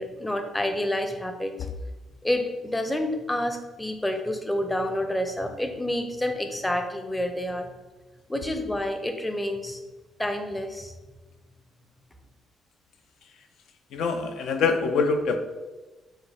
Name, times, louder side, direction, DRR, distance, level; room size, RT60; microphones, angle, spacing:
voice 1, 0.0-1.5 2.2-7.7 8.3-9.8 10.2-10.9, left 1 dB, 10° left, 5 dB, 0.6 m, -28 dB
voice 2, 13.9-15.4, left 4 dB, 75° left, 6 dB, 0.4 m, -24 dB
6.2 x 2.2 x 3.4 m, 1.2 s
cardioid pair, 90°, 0 cm